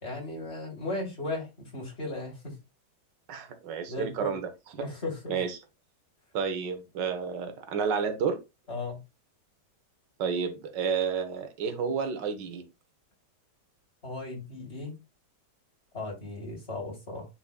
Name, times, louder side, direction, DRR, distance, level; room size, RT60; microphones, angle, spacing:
voice 1, 0.0-2.6 3.9-4.4 4.8-5.4 8.7-9.0 14.0-14.9 15.9-17.3, left 2 dB, 35° left, 3.3 m, -36 dB
voice 2, 3.3-4.9 5.3-5.6 6.3-8.4 10.2-12.6, right 6 dB, 80° right, 1.7 m, -31 dB
9.7 x 4.9 x 2.2 m
omnidirectional pair, 1.9 m